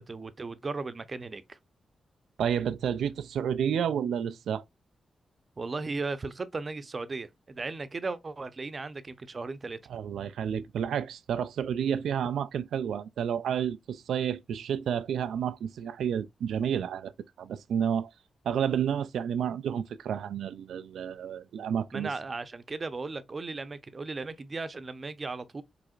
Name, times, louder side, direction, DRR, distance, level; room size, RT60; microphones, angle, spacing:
voice 1, 0.0-1.6 5.6-9.8 21.9-25.6, right 3 dB, 40° right, 0.7 m, -36 dB
voice 2, 2.4-4.6 9.9-17.1 17.4-18.1 18.5-22.1, right 8 dB, 85° right, 0.3 m, -30 dB
5.0 x 3.4 x 2.4 m
cardioid pair, 60°, 0 cm